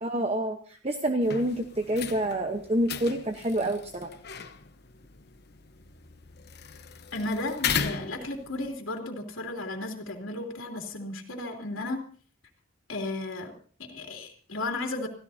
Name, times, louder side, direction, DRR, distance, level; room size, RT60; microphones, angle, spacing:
voice 1, 0.0-4.1, right 1 dB, 30° right, 5 dB, 1.0 m, -28 dB
sound 1, 1.2-8.7, left 7 dB, 55° left, 1.0 m, -37 dB
voice 2, 7.1-12.0 12.9-13.5 13.8-15.1, left 2 dB, 85° left, 1 dB, 3.0 m, -34 dB
26.5 x 16.0 x 2.8 m, 0.42 s
head